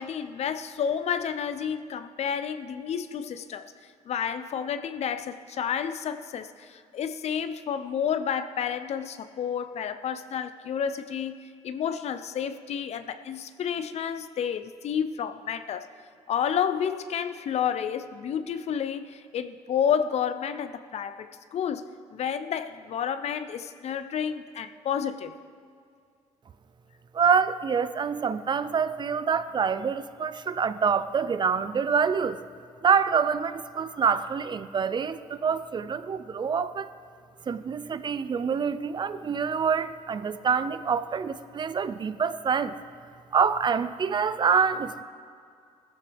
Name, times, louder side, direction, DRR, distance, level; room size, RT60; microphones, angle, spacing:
voice 1, 0.0-3.7 4.1-11.4 11.6-15.9 16.3-25.3, left 8 dB, 60° left, 11 dB, 0.6 m, -30 dB
voice 2, 27.1-32.4 32.8-36.9 37.5-42.7 43.3-45.0, right 6 dB, 35° right, 13 dB, 0.5 m, -26 dB
17.0 x 14.0 x 3.4 m, 2.3 s
cardioid pair, 100°, 12 cm